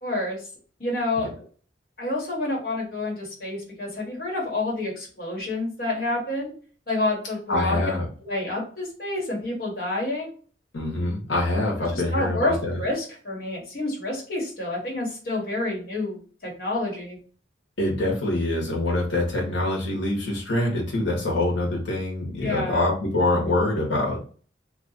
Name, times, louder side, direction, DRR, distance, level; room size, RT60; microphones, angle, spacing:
voice 1, 0.0-0.4 0.8-1.3 2.0-6.5 6.9-7.8 8.2-10.3 11.9-17.2 22.4-22.8, left 2 dB, 50° left, -3 dB, 1.4 m, -28 dB
voice 2, 7.5-8.1 10.7-12.8 17.8-24.2, left 2 dB, 85° left, -3 dB, 1.1 m, -25 dB
2.9 x 2.4 x 4.0 m, 0.42 s
head